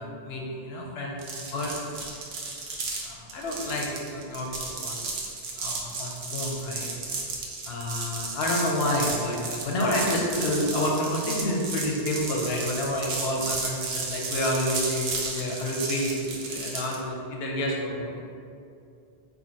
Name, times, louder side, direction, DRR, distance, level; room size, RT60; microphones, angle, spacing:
voice 1, 0.0-2.0 3.0-5.0 5.6-6.9 7.7-18.2, left 1 dB, 85° left, -1 dB, 0.8 m, -29 dB
sound 1, 1.2-17.0, right 3 dB, 80° right, 0.8 m, -33 dB
4.2 x 2.6 x 2.6 m, 2.5 s
omnidirectional pair, 1.0 m